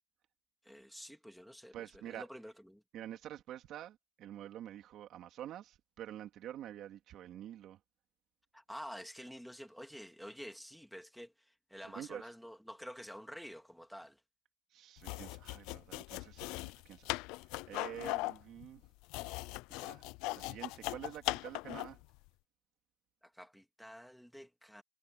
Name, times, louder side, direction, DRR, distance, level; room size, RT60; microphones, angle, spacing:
voice 1, 0.6-2.8 8.5-14.2 23.3-24.8, equal, ahead, 2.1 m, -49 dB
voice 2, 1.7-2.2 2.9-7.8 11.9-12.3 14.7-18.8 19.7-20.0 20.3-22.0, right 11 dB, 50° right, 2.6 m, -48 dB
sound 1, 15.0-22.0, left 22 dB, 85° left, 0.3 m, -39 dB
cardioid pair, 175°, 0 cm